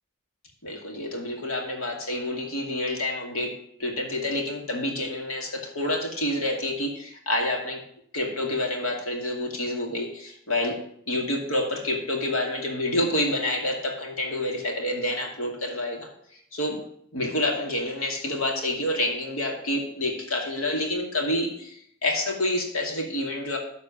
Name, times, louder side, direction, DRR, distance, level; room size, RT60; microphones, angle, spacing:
voice 1, 0.6-3.5 3.8-7.8 8.1-10.8 11.1-16.1 16.5-16.8 17.1-23.6, left 1 dB, 85° left, 1 dB, 2.4 m, -28 dB
12.5 x 4.2 x 6.9 m, 0.67 s
head